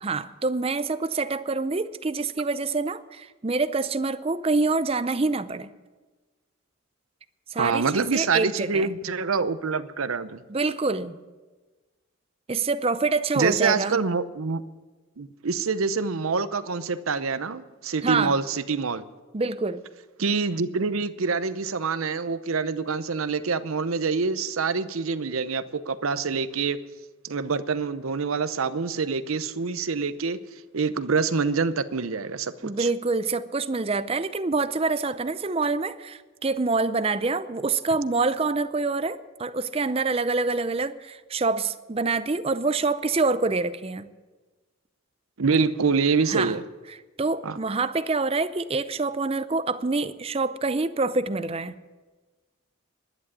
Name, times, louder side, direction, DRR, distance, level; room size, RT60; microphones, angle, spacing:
voice 1, 0.0-5.7 7.5-8.9 10.5-11.2 12.5-14.0 18.0-18.3 19.3-19.8 32.6-44.1 46.3-46.6 46.9-51.8, right 3 dB, 30° right, 13 dB, 0.5 m, -26 dB
voice 2, 7.6-10.4 13.4-14.6 15.2-19.0 20.2-26.8 27.2-30.4 30.7-32.9 45.4-46.6 47.4-47.6, right 4 dB, 80° right, 13 dB, 0.7 m, -26 dB
11.5 x 9.9 x 9.6 m, 1.3 s
head